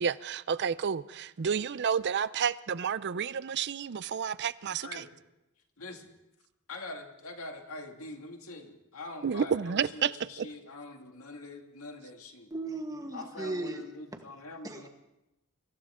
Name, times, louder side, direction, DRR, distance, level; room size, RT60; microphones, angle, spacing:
voice 1, 0.0-5.0 9.2-10.5, right 7 dB, 50° right, 0.5 m, -30 dB
voice 2, 4.8-5.1 5.8-6.1 6.7-12.5 13.1-14.9, left 2 dB, 70° left, 2.0 m, -44 dB
voice 3, 12.5-13.8 14.6-14.9, right 2 dB, 15° right, 1.5 m, -36 dB
24.5 x 14.5 x 3.7 m
head